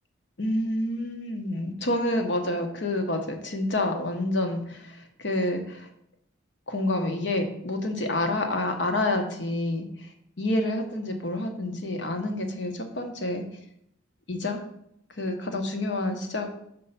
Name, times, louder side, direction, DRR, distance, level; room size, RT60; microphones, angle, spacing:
voice 1, 0.4-5.9 6.7-10.1 10.4-13.4 14.3-14.6 15.2-16.5, left 1 dB, 60° left, 4 dB, 0.9 m, -28 dB
5.4 x 4.3 x 5.7 m, 0.73 s
head